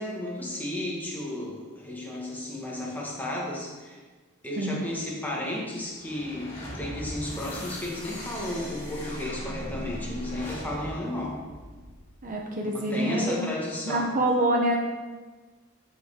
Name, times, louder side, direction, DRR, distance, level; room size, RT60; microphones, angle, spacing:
voice 1, 0.0-4.0 4.4-11.4 12.6-14.1, left 1 dB, 10° left, -4 dB, 1.5 m, -33 dB
sound 1, 5.9-12.2, equal, 30° left, 2.9 m, -38 dB
voice 2, 12.2-13.5 13.8-14.8, right 1 dB, 35° right, 1 dB, 0.8 m, -26 dB
12.5 x 5.5 x 3.6 m, 1.3 s
head